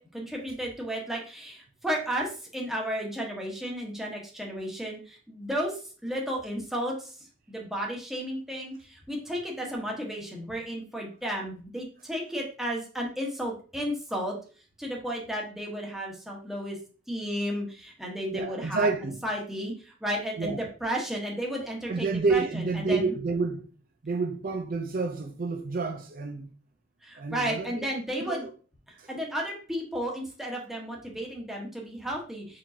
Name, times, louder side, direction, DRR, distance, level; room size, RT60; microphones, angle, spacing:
voice 1, 0.0-14.4 14.8-16.8 17.1-18.9 19.2-23.1 27.0-28.5 29.1-32.6, equal, ahead, 1.2 m, -33 dB
voice 2, 18.3-19.2 20.4-20.6 21.9-23.7 24.0-26.5 27.2-27.9 28.2-28.5 29.0-29.1, right 4 dB, 50° right, 0.5 m, -29 dB
4.8 x 3.8 x 2.7 m
head